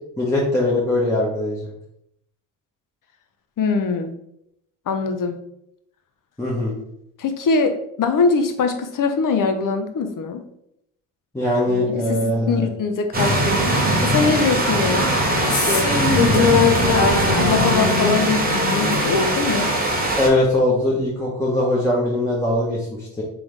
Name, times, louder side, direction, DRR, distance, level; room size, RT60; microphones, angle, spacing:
voice 1, 0.2-1.7 6.4-6.8 11.3-12.7 20.2-23.2, left 1 dB, 5° left, -6 dB, 1.2 m, -21 dB
voice 2, 3.6-4.2 4.9-5.4 7.2-10.4 11.7-13.6 14.0-15.1 15.5-15.9 16.3-16.6 17.4-19.8, left 4 dB, 45° left, 7 dB, 0.8 m, -22 dB
sound 1, 13.1-20.3, right 1 dB, 20° right, 1.3 m, -21 dB
sound 2, 15.2-19.7, left 5 dB, 65° left, 1.2 m, -22 dB
3.8 x 3.4 x 3.3 m, 0.78 s
hypercardioid pair, 55°, 46 cm